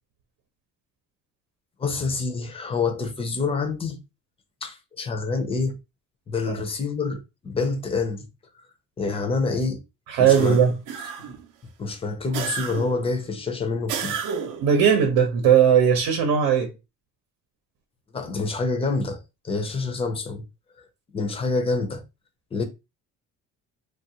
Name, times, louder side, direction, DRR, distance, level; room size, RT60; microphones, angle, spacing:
voice 1, 1.8-4.0 4.6-5.8 6.3-8.3 9.0-9.8 10.2-10.6 11.2-11.3 11.8-14.2 18.1-20.4 21.1-22.0 22.5-22.6, left 4 dB, 15° left, 0.4 m, -27 dB
voice 2, 10.1-10.8 14.6-16.7, right 8 dB, 90° right, 0.8 m, -18 dB
sound 1, 10.3-11.5 12.3-13.1 13.9-14.7, right 7 dB, 65° right, 0.5 m, -32 dB
3.2 x 2.4 x 2.8 m
cardioid pair, 175°, 34 cm